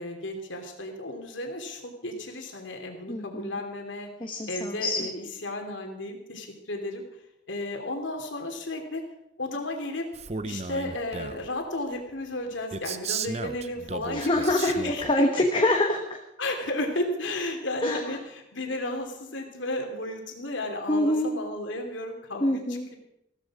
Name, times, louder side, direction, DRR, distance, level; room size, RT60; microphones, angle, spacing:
voice 1, 0.0-4.1 4.5-7.0 7.5-9.0 9.4-10.1 10.4-15.0 15.6-15.7 16.4-22.6, left 1 dB, 80° left, 3 dB, 2.8 m, -33 dB
voice 2, 3.1-3.5 4.2-5.0 14.1-16.2 17.8-18.0 20.9-21.3 22.4-22.9, left 1 dB, 25° left, 2 dB, 1.1 m, -25 dB
Male speech man speaking, 10.1-11.5 12.7-15.1, right 4 dB, 35° right, 0.6 m, -34 dB
15.5 x 14.0 x 4.8 m, 0.84 s
head